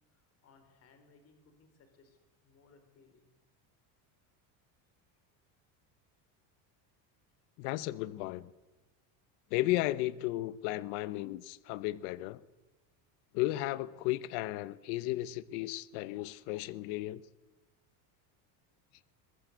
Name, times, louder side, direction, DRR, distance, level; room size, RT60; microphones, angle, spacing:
voice 1, 0.1-3.3, left 4 dB, 35° left, 8 dB, 4.3 m, -64 dB
voice 2, 7.6-8.5 9.5-12.4 13.3-17.2, left 17 dB, 80° left, 17 dB, 1.0 m, -34 dB
22.5 x 21.0 x 8.1 m, 1.1 s
cardioid pair, 175°, 44 cm